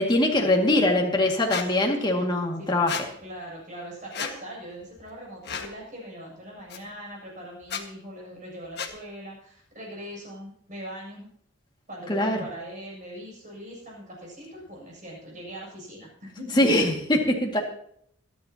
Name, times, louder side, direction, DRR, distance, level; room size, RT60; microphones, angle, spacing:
voice 1, 0.0-3.0 12.1-12.4 16.6-17.6, left 1 dB, 20° left, 1 dB, 2.2 m, -22 dB
Squeak, 1.5-1.7 2.9-3.0 4.1-4.3 5.4-5.7 6.7-6.8 7.6-7.8 8.8-8.9, left 6 dB, 50° left, 1.7 m, -32 dB
voice 2, 1.8-2.3 2.6-2.7 3.2-11.3 11.9-16.9, equal, 35° right, -2 dB, 7.7 m, -41 dB
25.5 x 10.5 x 2.9 m, 0.67 s
head